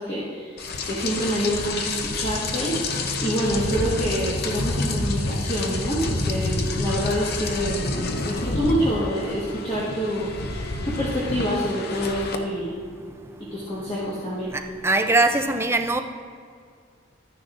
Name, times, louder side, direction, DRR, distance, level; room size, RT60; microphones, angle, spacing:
voice 1, 0.0-2.8 3.2-10.5 10.8-12.8 13.4-14.5, equal, 30° left, -8 dB, 1.4 m, -27 dB
Rain, 0.6-12.4, left 2 dB, 55° left, 0.7 m, -28 dB
voice 2, 14.5-16.0, right 2 dB, 15° right, 6 dB, 0.4 m, -21 dB
12.5 x 9.9 x 2.5 m, 2.2 s
head